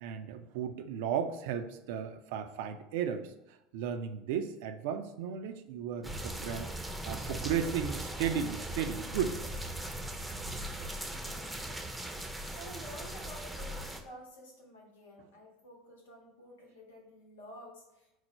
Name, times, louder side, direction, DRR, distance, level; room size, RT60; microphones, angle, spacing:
voice 1, 0.0-6.7 7.0-9.4, right 8 dB, 65° right, 9 dB, 0.3 m, -35 dB
sound 1, 6.0-14.0, right 1 dB, 5° right, 0.5 m, -39 dB
voice 2, 11.0-18.2, equal, 75° left, -1 dB, 0.8 m, -51 dB
4.7 x 2.1 x 4.1 m, 0.90 s
figure-of-eight pair, 70°, 0 cm